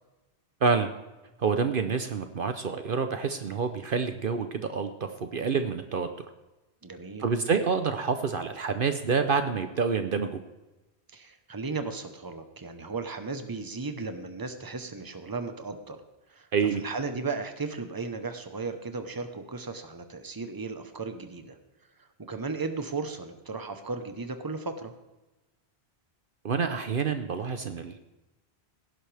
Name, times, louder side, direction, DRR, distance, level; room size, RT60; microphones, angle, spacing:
voice 1, 1.4-6.1 7.2-10.4 16.5-16.8 26.4-28.0, right 5 dB, 55° right, 8 dB, 0.9 m, -27 dB
voice 2, 6.8-7.3 11.1-16.0 16.3-21.6 22.0-24.9, right 4 dB, 20° right, 8 dB, 1.0 m, -35 dB
17.5 x 11.0 x 3.4 m, 1.1 s
omnidirectional pair, 1.1 m